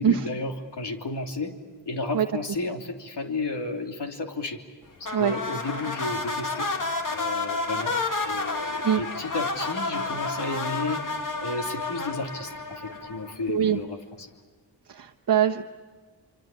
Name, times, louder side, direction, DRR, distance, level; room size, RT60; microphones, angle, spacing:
voice 1, 0.0-1.5 1.9-4.6 5.2-6.7 7.1-7.9 8.2-11.0 11.4-14.3, left 3 dB, 65° left, 3 dB, 3.1 m, -32 dB
sound 1, 5.0-13.5, left 3 dB, 45° left, 2.5 m, -30 dB
voice 2, 13.5-13.8 14.9-15.6, right 9 dB, 50° right, 3 dB, 1.2 m, -22 dB
25.5 x 25.0 x 8.5 m, 1.4 s
supercardioid pair, 40°, 45 cm